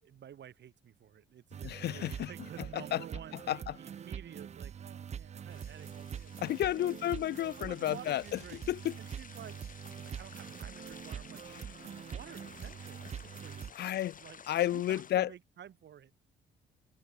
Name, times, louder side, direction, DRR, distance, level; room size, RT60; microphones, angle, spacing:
voice 1, 0.0-7.2 7.6-8.6 9.0-14.4 14.7-16.1, right 10 dB, 60° right, 3.2 m, -52 dB
sound 1, 1.5-13.7, right 8 dB, 35° right, 0.4 m, -44 dB
voice 2, 1.6-2.3 2.7-3.0 3.5-3.7 6.4-8.4 8.7-8.9 13.8-14.1 14.5-15.3, left 12 dB, 60° left, 0.4 m, -31 dB
sound 2, 5.5-15.1, left 6 dB, 40° left, 4.1 m, -54 dB
cardioid pair, 90°, 20 cm